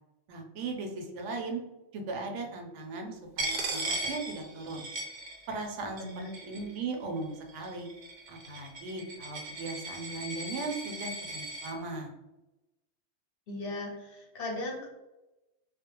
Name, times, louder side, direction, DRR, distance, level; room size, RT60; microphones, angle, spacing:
voice 1, 0.3-1.6 1.9-4.9 5.5-6.0 6.4-7.9 8.3-12.1, right 3 dB, 80° right, 2 dB, 0.9 m, -38 dB
Coin (dropping), 3.4-5.7 6.0-6.8 7.5-11.7, right 2 dB, 55° right, 0.5 m, -37 dB
voice 2, 6.0-6.3 13.5-14.9, left 2 dB, 60° left, -1 dB, 0.8 m, -37 dB
2.5 x 2.0 x 2.8 m, 1.0 s
omnidirectional pair, 1.2 m